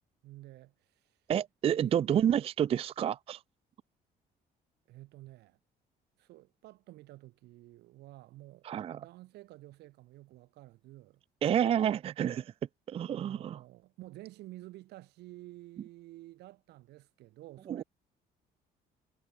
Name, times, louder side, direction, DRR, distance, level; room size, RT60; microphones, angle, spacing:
voice 1, 0.2-1.1 1.7-2.3 4.9-5.6 6.2-8.7 9.0-11.9 13.1-17.8, right 17 dB, 80° right, 2.3 m, -51 dB
voice 2, 1.3-3.4 8.6-9.0 11.4-12.5 12.9-13.6 17.7-17.8, right 9 dB, 35° right, 0.3 m, -29 dB
cardioid pair, 110°, 17 cm